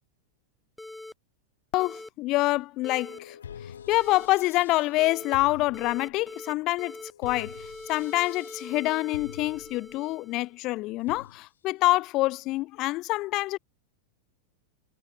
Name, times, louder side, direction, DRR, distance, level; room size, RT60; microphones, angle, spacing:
sound 1, 0.8-1.1 1.8-2.1 2.8-3.2 3.9-4.3 5.0-5.4 5.7-6.5 6.8-10.5, left 2 dB, 5° left, 0.9 m, -43 dB
voice 1, 1.7-3.4 3.9-13.6, left 19 dB, 40° left, 0.3 m, -26 dB
sound 2, 3.0-11.4, left 8 dB, 65° left, 5.9 m, -47 dB
figure-of-eight pair, 90°, 0 cm